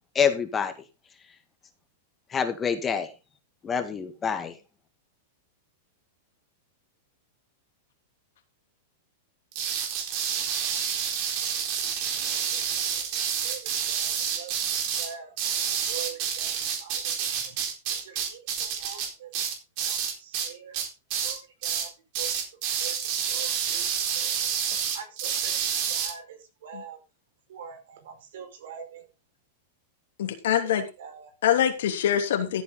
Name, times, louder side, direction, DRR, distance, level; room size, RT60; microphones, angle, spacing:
voice 1, 0.1-0.7 2.3-3.1 3.6-4.6, left 6 dB, 20° left, 8 dB, 2.0 m, -26 dB
sound 1, 9.5-20.5 20.7-21.4 21.6-21.9 22.1-26.1, right 8 dB, 45° right, 4.1 m, -29 dB
voice 2, 12.5-13.0 13.4-13.6 13.9-14.5 15.0-15.3 15.9-17.6 18.0-19.3 19.9-20.8 21.2-21.9 22.2-22.3 22.8-22.9 23.3-23.8 24.1-24.5 24.9-25.6 25.9-27.0 27.5-29.0 30.6-31.3, right 8 dB, 70° right, 7 dB, 5.1 m, -44 dB
voice 3, 30.2-30.9 31.4-32.6, left 10 dB, 75° left, 6 dB, 3.0 m, -24 dB
14.5 x 8.5 x 3.9 m, 0.29 s
supercardioid pair, 145°, 0 cm